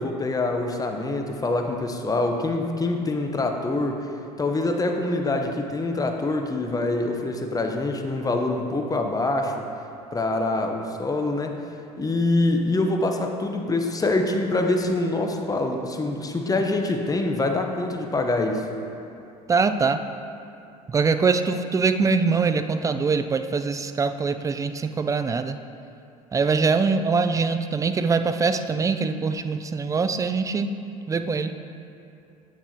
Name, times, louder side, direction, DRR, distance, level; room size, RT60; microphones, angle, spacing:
voice 1, 0.0-4.1 4.4-9.6 10.1-11.6 12.0-18.6, left 2 dB, 20° left, 4 dB, 0.7 m, -25 dB
voice 2, 19.5-20.0 20.9-25.6 26.3-30.8 31.1-31.5, right 4 dB, 15° right, 9 dB, 0.3 m, -23 dB
8.5 x 6.0 x 2.8 m, 2.7 s
hypercardioid pair, 70°, 19 cm